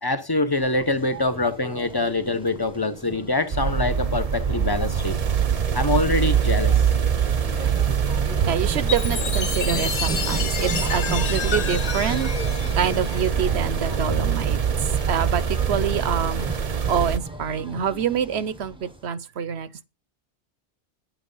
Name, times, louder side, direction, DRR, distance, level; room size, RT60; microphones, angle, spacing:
voice 1, 0.0-5.2 5.7-6.8, left 2 dB, 20° left, 0.9 m, -24 dB
sound 1, 0.5-19.1, right 1 dB, 5° right, 1.1 m, -37 dB
sound 2, 3.5-17.2, right 7 dB, 40° right, 0.8 m, -24 dB
voice 2, 8.4-12.3 12.8-14.6 15.1-16.5 16.9-19.8, right 8 dB, 70° right, 1.0 m, -26 dB
Chime, 8.9-13.6, left 7 dB, 75° left, 1.4 m, -30 dB
9.3 x 9.2 x 5.4 m
omnidirectional pair, 1.1 m